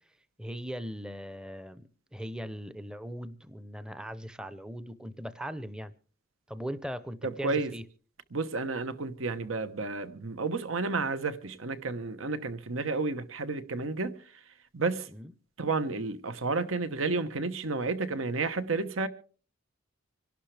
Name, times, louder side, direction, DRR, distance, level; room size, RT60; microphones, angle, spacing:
voice 1, 0.4-5.9 6.5-7.8 15.1-15.3, equal, 5° right, 0.7 m, -39 dB
voice 2, 8.3-14.2 14.7-15.1 15.6-19.1, right 3 dB, 75° right, 1.1 m, -31 dB
26.0 x 12.0 x 3.4 m
head